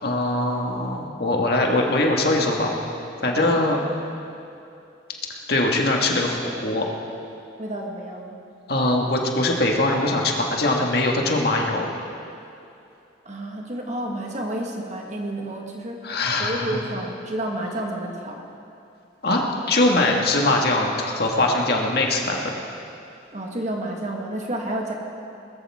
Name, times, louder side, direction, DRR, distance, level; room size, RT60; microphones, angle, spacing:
voice 1, 0.0-2.7 3.2-3.8 5.5-6.9 8.7-11.9 16.0-16.8 19.2-22.4, left 2 dB, 55° left, 0 dB, 1.8 m, -22 dB
voice 2, 7.6-8.4 13.2-18.5 23.3-24.9, right 1 dB, 40° right, 0 dB, 1.6 m, -30 dB
20.0 x 14.0 x 3.6 m, 2.6 s
head